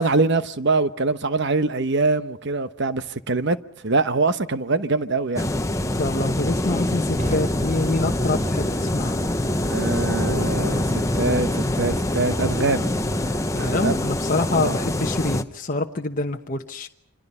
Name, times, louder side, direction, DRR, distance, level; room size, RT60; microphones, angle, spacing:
voice 1, 0.0-3.6 3.8-5.5 9.7-12.9 13.6-14.0 14.5-14.8, right 3 dB, 50° right, 1.0 m, -23 dB
sound 1, 5.4-15.4, left 1 dB, 15° left, 0.9 m, -24 dB
Fire, 5.8-14.6, right 1 dB, 35° right, 5.6 m, -39 dB
voice 2, 5.9-9.2 13.5-16.9, left 2 dB, 35° left, 1.0 m, -26 dB
28.0 x 26.0 x 5.6 m
head